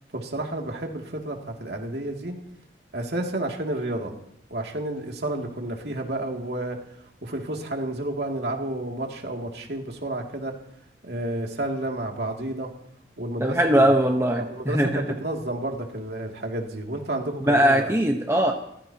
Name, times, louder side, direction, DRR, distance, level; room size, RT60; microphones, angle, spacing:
voice 1, 0.1-2.4 2.9-4.1 4.5-6.8 7.2-10.5 11.0-12.7 13.2-13.8 14.2-17.9, right 1 dB, 65° right, 1 dB, 2.7 m, -31 dB
voice 2, 13.4-15.0 17.4-18.5, right 1 dB, 15° right, 2 dB, 1.1 m, -20 dB
29.0 x 16.0 x 3.0 m, 0.76 s
head